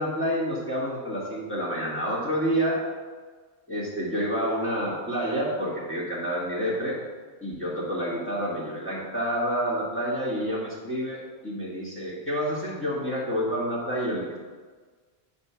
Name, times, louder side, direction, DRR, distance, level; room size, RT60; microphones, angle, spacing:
voice 1, 0.0-2.8 3.7-7.0 7.4-14.4, equal, 10° left, -6 dB, 1.7 m, -28 dB
8.2 x 4.3 x 5.6 m, 1.4 s
omnidirectional pair, 1.1 m